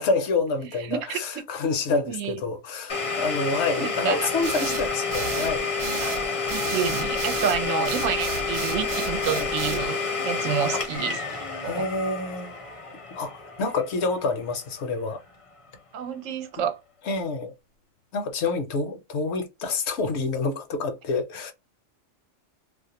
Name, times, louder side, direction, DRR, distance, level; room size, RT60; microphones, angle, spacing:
voice 1, 0.0-5.7 7.7-7.9 9.3-9.5 10.7-10.8 11.6-12.5 13.1-15.2 17.0-17.5 18.1-21.5, left 3 dB, 65° left, 0.8 m, -28 dB
voice 2, 0.9-1.2 2.1-2.4 3.8-4.2 6.0-6.2 6.5-11.2 11.6-11.8 15.9-16.8, right 8 dB, 85° right, 0.9 m, -29 dB
Domestic sounds home sounds, 2.9-14.5, left 4 dB, 35° left, 0.6 m, -29 dB
sound 1, 4.4-9.9, right 6 dB, 60° right, 0.5 m, -33 dB
2.4 x 2.1 x 2.7 m
omnidirectional pair, 1.3 m